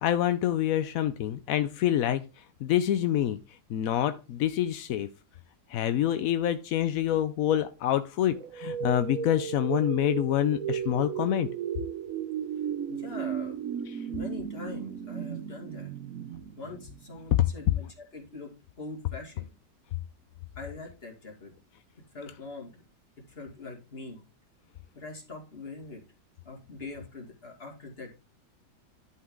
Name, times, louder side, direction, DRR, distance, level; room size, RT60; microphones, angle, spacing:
voice 1, 0.0-2.2 2.6-3.4 3.7-5.1 5.7-11.5 13.9-14.0, left 11 dB, 70° left, 11 dB, 0.8 m, -26 dB
sound 1, 8.3-17.3, right 9 dB, 65° right, 0.9 m, -35 dB
voice 2, 12.9-13.6 14.1-15.9 16.6-18.5 18.8-19.5 20.6-21.5 22.1-22.8 23.3-24.2 24.9-26.0 26.4-28.1, left 3 dB, 35° left, 1 dB, 2.5 m, -42 dB
11.0 x 5.6 x 3.7 m, 0.31 s
omnidirectional pair, 1.9 m